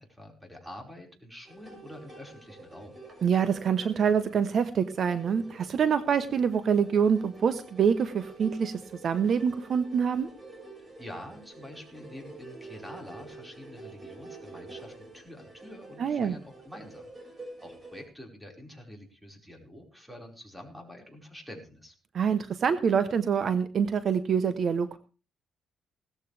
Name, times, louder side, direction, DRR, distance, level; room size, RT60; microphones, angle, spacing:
voice 1, 0.0-3.0 10.8-21.9, left 1 dB, 5° right, 2 dB, 5.0 m, -47 dB
sound 1, 1.4-18.0, right 2 dB, 30° right, 6.4 m, -48 dB
voice 2, 3.2-10.3 16.0-16.4 22.1-25.0, right 7 dB, 55° right, 12 dB, 0.9 m, -26 dB
17.5 x 14.0 x 3.4 m, 0.35 s
cardioid pair, 90°, 0 cm